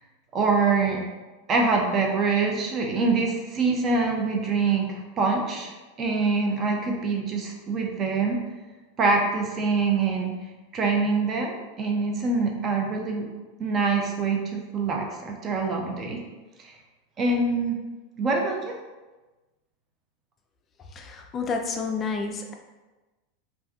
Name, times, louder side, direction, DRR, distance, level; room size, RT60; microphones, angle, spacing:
voice 1, 0.3-1.0 1.5-5.7 6.0-8.4 9.0-10.4 10.7-13.3 13.6-16.2 16.6-16.7 17.2-17.8 18.2-18.7, right 4 dB, 35° right, 1 dB, 0.6 m, -25 dB
voice 2, 20.9-22.5, left 4 dB, 30° left, 3 dB, 0.3 m, -30 dB
3.3 x 2.6 x 2.3 m, 1.2 s
hypercardioid pair, 105°, 0 cm